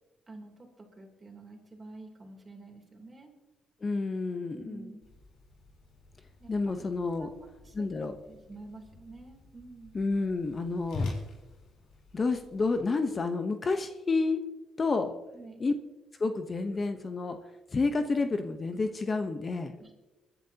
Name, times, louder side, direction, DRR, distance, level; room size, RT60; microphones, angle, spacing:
voice 1, 0.3-3.3 4.5-5.0 6.4-6.9 7.2-10.0 15.3-15.7 19.8-20.0, right 3 dB, 30° right, 2 dB, 3.3 m, -49 dB
voice 2, 3.8-4.9 6.5-7.3 7.7-8.2 9.9-11.1 12.1-14.4 14.8-15.1 15.6-15.7 16.2-17.4 17.7-19.7, left 3 dB, 35° left, 7 dB, 1.0 m, -29 dB
Whoosh swoosh swish, 5.0-12.8, left 3 dB, 80° left, 3.9 m, -43 dB
25.5 x 11.0 x 2.9 m, 1.1 s
cardioid pair, 90°, 0 cm